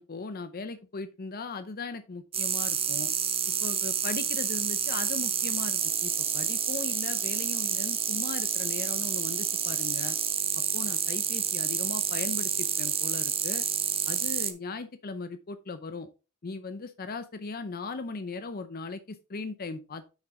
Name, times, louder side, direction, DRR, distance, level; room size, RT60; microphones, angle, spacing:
voice 1, 0.0-3.1 3.6-10.2 10.7-13.6 14.1-16.1 16.4-20.0, left 3 dB, 45° left, 11 dB, 0.6 m, -38 dB
sound 1, 2.3-14.5, right 8 dB, 25° right, 0.9 m, -29 dB
7.4 x 6.2 x 3.6 m, 0.31 s
head